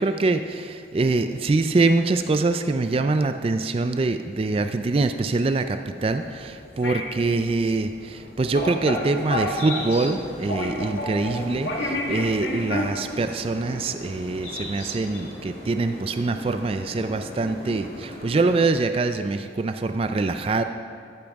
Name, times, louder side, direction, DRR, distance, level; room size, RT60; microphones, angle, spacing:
voice 1, 0.0-20.6, right 3 dB, 30° right, 8 dB, 0.3 m, -24 dB
sound 1, 6.0-12.8, left 1 dB, 65° left, 1.7 m, -31 dB
sound 2, 9.1-18.7, left 1 dB, 35° left, 2.0 m, -38 dB
13.5 x 10.5 x 3.5 m, 2.3 s
head